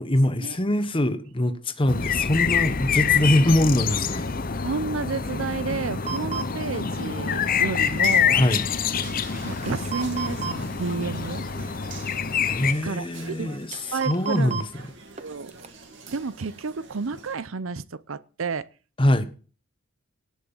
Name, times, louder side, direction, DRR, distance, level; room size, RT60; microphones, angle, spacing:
voice 1, 0.0-4.3 8.3-8.6 12.4-13.7 14.1-14.6 19.0-19.3, left 1 dB, 25° left, 1.1 m, -23 dB
sound 1, 1.9-12.7, left 7 dB, 45° left, 0.8 m, -26 dB
voice 2, 4.6-8.4 9.4-11.7 12.8-13.6 13.9-14.6 15.2-15.5 16.1-18.7, right 4 dB, 75° right, 0.7 m, -31 dB
sound 2, 6.1-6.5 9.6-10.6 12.2-12.3 13.7-14.7 15.2-15.3 15.5-15.7, right 6 dB, 30° right, 1.0 m, -32 dB
sound 3, 7.7-17.4, right 4 dB, 60° right, 2.4 m, -45 dB
18.0 x 6.2 x 7.1 m
head